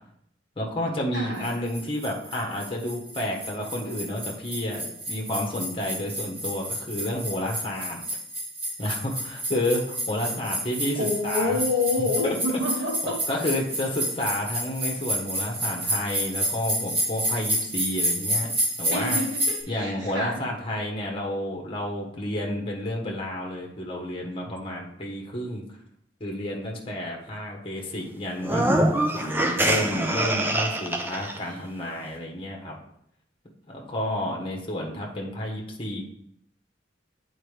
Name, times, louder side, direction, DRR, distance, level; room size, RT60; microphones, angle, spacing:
voice 1, 0.6-8.0 8.8-11.0 11.2-11.6 13.0-18.5 18.8-19.2 19.7-25.6 26.2-28.7 29.1-32.7 33.7-36.0, left 1 dB, 30° left, 0 dB, 1.2 m, -30 dB
voice 2, 1.1-1.6 10.9-13.2 18.9-20.4 31.4-31.7, left 3 dB, 75° right, -2 dB, 1.8 m, -28 dB
sound 1, 1.4-19.6, right 1 dB, 30° right, 2.2 m, -30 dB
sound 2, 28.4-31.4, right 1 dB, 10° right, 0.5 m, -24 dB
8.8 x 4.4 x 3.3 m, 0.71 s
head